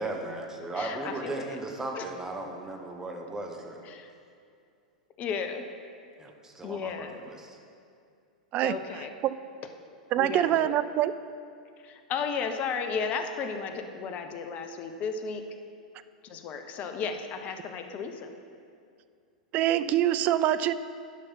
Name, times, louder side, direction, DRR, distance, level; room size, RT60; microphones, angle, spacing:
voice 1, 0.0-3.8 6.2-7.6, right 2 dB, 15° right, 2 dB, 1.3 m, -36 dB
voice 2, 0.7-1.6 1.9-2.1 3.8-4.1 5.2-5.6 6.6-7.2 8.6-9.1 10.1-10.8 11.8-15.4 16.2-18.3, left 5 dB, 35° left, 7 dB, 0.8 m, -34 dB
voice 3, 10.1-11.1 19.5-20.7, right 12 dB, 40° right, 14 dB, 0.4 m, -24 dB
11.0 x 5.3 x 5.8 m, 2.4 s
figure-of-eight pair, 95°, 4 cm